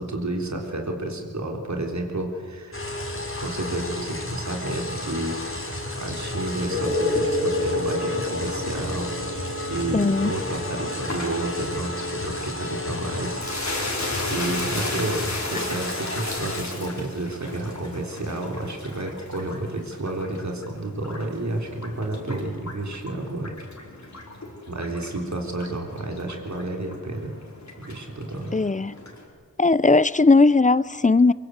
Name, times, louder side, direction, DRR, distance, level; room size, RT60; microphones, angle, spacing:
voice 1, 0.0-2.8 3.4-9.1 9.7-13.4 14.3-23.5 24.7-27.3 27.8-28.5, right 2 dB, 60° right, 3.9 m, -31 dB
sound 1, 2.7-16.6, left 2 dB, 40° left, 4.6 m, -32 dB
sound 2, 6.5-18.0 22.3-22.4, left 2 dB, 35° right, 6.3 m, -32 dB
voice 2, 9.9-10.3 15.5-15.6 28.5-28.9 29.6-31.3, left 3 dB, 25° left, 0.6 m, -18 dB
sound 3, 11.0-29.3, left 2 dB, 60° left, 4.7 m, -36 dB
23.0 x 23.0 x 8.0 m
wide cardioid pair, 65°, 33 cm